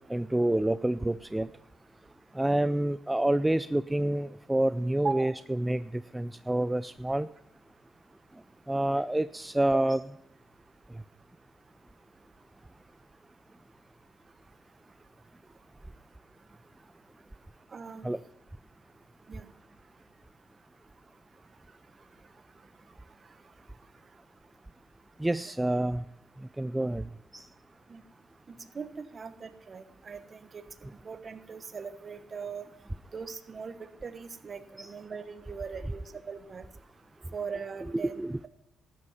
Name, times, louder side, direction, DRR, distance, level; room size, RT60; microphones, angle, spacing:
voice 1, 0.1-1.5 2.3-7.3 8.7-10.0 18.0-18.2 25.2-26.0 26.6-27.1 27.3-27.5 34.8-34.9 37.9-38.5, right 1 dB, 10° right, 13 dB, 0.3 m, -28 dB
voice 2, 17.7-18.1 19.3-19.4 27.9-28.0 28.5-30.6 31.0-32.6 33.1-36.6 37.3-38.2, right 5 dB, 40° right, 10 dB, 1.1 m, -39 dB
13.0 x 9.6 x 5.6 m, 0.82 s
cardioid pair, 90°, 0 cm